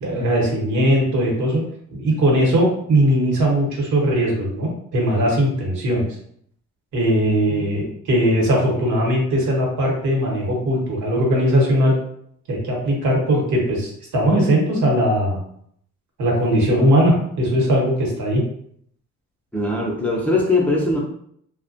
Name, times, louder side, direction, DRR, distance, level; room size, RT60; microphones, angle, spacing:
voice 1, 0.0-1.6 1.9-6.0 6.9-11.9 12.5-15.4 16.2-18.4, equal, 70° right, -2 dB, 1.1 m, -19 dB
voice 2, 7.2-7.9 19.5-21.0, left 2 dB, 5° left, -3 dB, 0.5 m, -22 dB
2.3 x 2.1 x 2.6 m, 0.67 s
cardioid pair, 90°, 30 cm